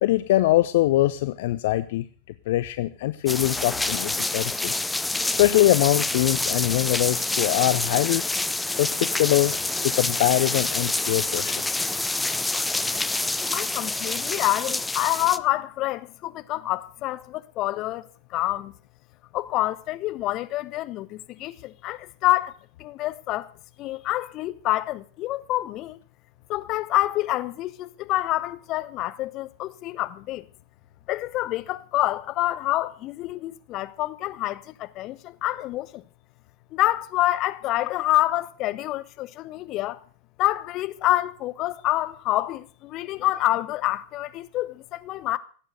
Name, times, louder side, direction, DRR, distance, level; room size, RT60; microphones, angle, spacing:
voice 1, 0.0-2.1 2.5-4.7 5.3-8.3 8.7-9.6 9.8-11.6, left 15 dB, 55° left, 0.7 m, -23 dB
sound 1, 3.3-15.4, left 2 dB, 5° left, 0.7 m, -27 dB
voice 2, 13.5-18.7 19.3-23.5 23.8-26.0 26.5-30.4 31.1-36.0 36.7-40.0 40.4-45.4, left 16 dB, 35° left, 1.1 m, -27 dB
17.0 x 9.0 x 7.9 m
figure-of-eight pair, 90°, 0 cm